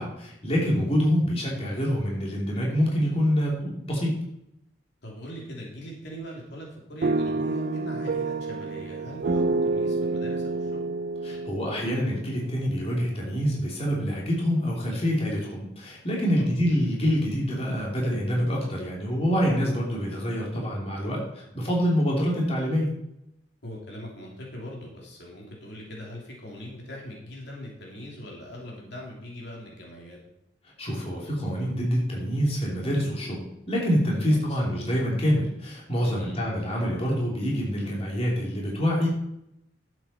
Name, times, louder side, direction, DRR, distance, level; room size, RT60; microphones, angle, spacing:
voice 1, 0.0-4.2 11.2-22.9 30.8-39.1, equal, 35° left, -3 dB, 3.1 m, -26 dB
voice 2, 5.0-10.8 16.3-16.4 23.6-30.2 34.3-34.6 36.1-36.5, equal, 65° left, -2 dB, 3.0 m, -41 dB
sound 1, 7.0-13.0, right 3 dB, 55° right, 0.5 m, -29 dB
11.5 x 8.2 x 4.3 m, 0.83 s
head